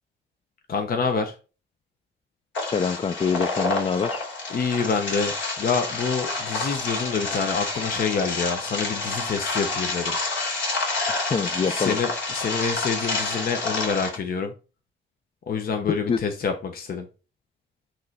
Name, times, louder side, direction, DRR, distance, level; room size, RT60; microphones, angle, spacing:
voice 1, 0.7-1.3 4.5-10.1 11.7-14.5 15.5-17.1, left 5 dB, 50° left, 0.8 m, -27 dB
sound 1, 2.5-14.2, left 3 dB, 70° left, 3.2 m, -29 dB
voice 2, 2.7-4.2 11.3-12.0 16.1-16.2, left 6 dB, 30° left, 0.4 m, -25 dB
8.8 x 3.2 x 4.1 m
wide cardioid pair, 140°, 20 cm